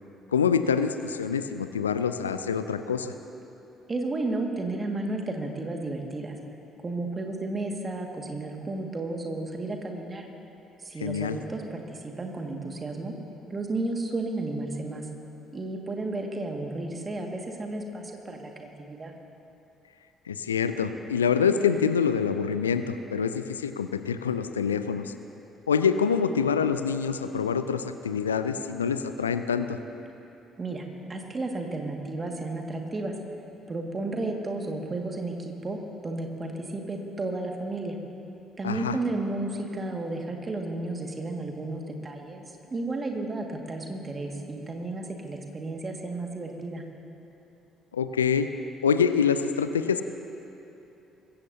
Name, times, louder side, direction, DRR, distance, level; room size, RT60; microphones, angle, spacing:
voice 1, 0.3-3.1 11.0-11.4 20.3-25.1 25.7-29.8 38.6-39.0 47.9-48.5 48.8-50.0, left 6 dB, 80° left, 10 dB, 0.4 m, -26 dB
voice 2, 3.9-6.4 6.8-10.3 10.8-13.1 13.5-15.1 15.5-19.1 30.6-30.8 31.1-33.1 33.7-35.8 36.0-38.0 38.6-46.8, right 2 dB, 30° right, 2 dB, 2.0 m, -33 dB
22.0 x 15.5 x 2.8 m, 2.9 s
figure-of-eight pair, 50°, 0 cm